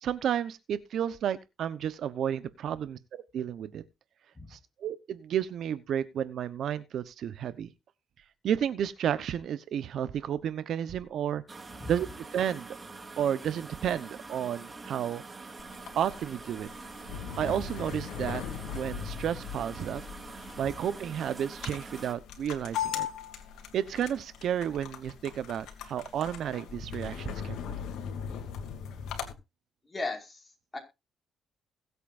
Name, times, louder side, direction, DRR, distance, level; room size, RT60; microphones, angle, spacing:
voice 1, 0.0-3.8 4.5-7.7 8.4-11.4 11.9-12.1 12.3-12.7 13.2-15.2 15.9-16.7 17.4-18.4 18.7-20.0 20.6-23.1 23.7-27.8, right 9 dB, 70° right, 0.9 m, -32 dB
sound 1, 11.5-22.1, right 3 dB, 25° right, 2.1 m, -45 dB
sound 2, 15.6-29.3, left 8 dB, 80° left, 2.6 m, -39 dB
voice 2, 29.8-30.8, left 3 dB, 20° left, 5.1 m, -37 dB
21.5 x 8.3 x 2.6 m
cardioid pair, 90°, 0 cm